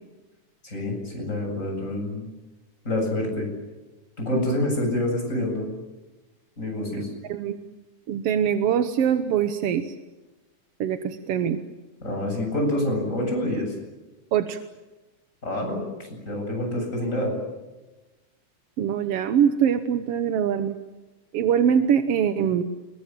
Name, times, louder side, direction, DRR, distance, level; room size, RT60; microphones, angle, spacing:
voice 1, 0.6-2.3 2.8-3.5 4.2-5.7 6.6-7.1 12.0-13.7 15.4-17.4, left 1 dB, 20° left, 1 dB, 8.3 m, -27 dB
voice 2, 7.2-7.6 8.1-9.9 10.8-11.6 14.3-14.6 18.8-20.8 21.3-22.6, right 8 dB, 60° right, 9 dB, 1.7 m, -23 dB
29.0 x 22.5 x 7.6 m, 1.1 s
omnidirectional pair, 3.6 m